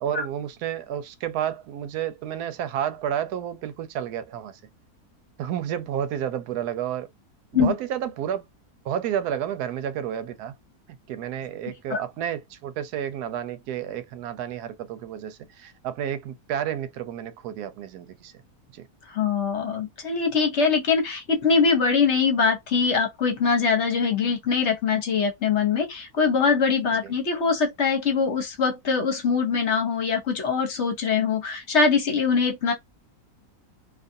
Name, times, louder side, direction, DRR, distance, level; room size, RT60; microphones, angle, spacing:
voice 1, 0.0-4.6 5.4-7.1 7.5-8.4 8.8-10.5 10.9-18.3 18.7-18.9 27.0-27.1, right 10 dB, 90° right, 1.1 m, -31 dB
voice 2, 19.1-32.7, left 5 dB, 55° left, 1.0 m, -23 dB
2.6 x 2.4 x 2.6 m
omnidirectional pair, 1.6 m